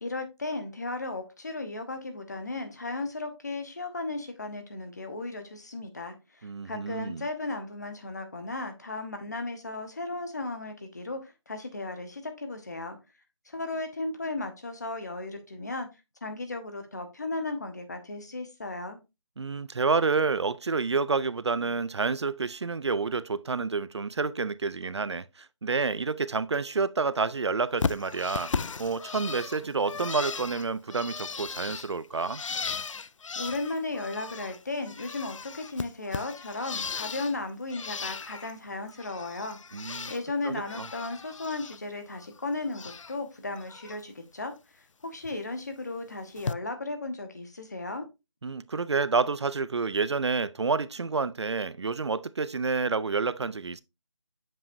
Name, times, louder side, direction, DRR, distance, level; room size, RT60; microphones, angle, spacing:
voice 1, 0.0-13.0 13.5-15.9 16.2-19.0 33.4-39.6 39.8-48.1, left 2 dB, 35° left, 1.0 m, -35 dB
voice 2, 6.4-7.3 19.4-28.5 28.8-32.4 39.7-40.1 40.4-40.9 48.4-53.8, right 4 dB, 65° right, 0.4 m, -29 dB
Bird, 27.8-34.6 34.8-37.4 37.7-38.5 38.9-40.2 40.5-41.8 42.1-43.2 43.5-44.0 45.2-45.4 46.4-46.5, left 5 dB, 85° left, 0.4 m, -36 dB
7.3 x 5.4 x 2.6 m
figure-of-eight pair, 175°, 16 cm